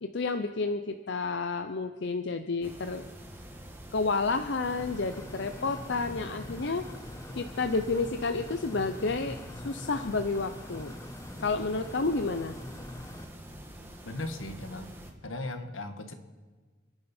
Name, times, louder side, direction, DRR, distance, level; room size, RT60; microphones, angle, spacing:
voice 1, 0.0-3.0 3.9-6.8 7.3-10.9 11.4-12.6, left 3 dB, 60° left, 8 dB, 0.7 m, -30 dB
sound 1, 2.6-15.1, right 1 dB, 10° right, 1.7 m, -46 dB
sound 2, 4.6-13.2, left 1 dB, 15° left, 0.6 m, -44 dB
voice 2, 14.0-14.9 15.2-16.1, left 2 dB, 80° left, 7 dB, 1.6 m, -37 dB
29.0 x 10.5 x 4.4 m, 1.4 s
head